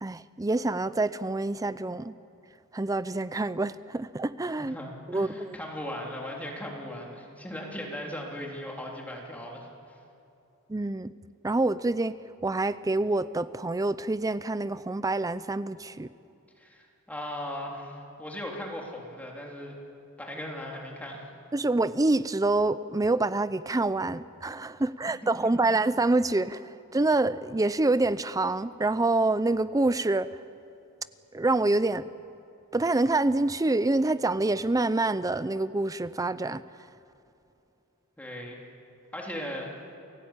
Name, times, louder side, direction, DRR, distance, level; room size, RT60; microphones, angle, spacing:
voice 1, 0.0-2.1 2.7-4.8 5.1-5.6 10.7-11.1 11.4-12.2 12.4-16.1 21.5-30.3 31.3-32.1 32.7-36.6, right 2 dB, 15° right, 15 dB, 0.5 m, -26 dB
voice 2, 4.6-10.0 16.6-19.8 20.2-21.3 25.2-25.3 25.6-25.7 38.2-38.6 39.1-39.7, left 1 dB, 5° left, -1 dB, 3.3 m, -38 dB
29.0 x 17.0 x 8.9 m, 2.7 s
head